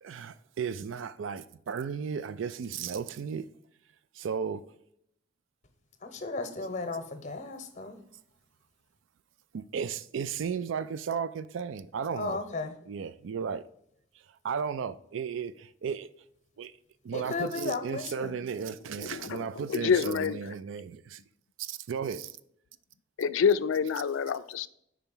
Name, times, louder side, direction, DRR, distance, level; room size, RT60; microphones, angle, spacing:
voice 1, 0.0-3.4 4.2-4.6 9.5-12.4 12.9-13.6 14.4-16.1 16.6-16.7 17.0-21.2 21.6-22.4, right 6 dB, 70° right, 0.4 m, -34 dB
voice 2, 6.0-8.0 12.1-12.8 17.1-18.3, left 3 dB, 40° left, 0.9 m, -35 dB
voice 3, 19.0-20.4 23.2-24.7, left 6 dB, 75° left, 0.4 m, -27 dB
5.0 x 4.5 x 5.4 m
head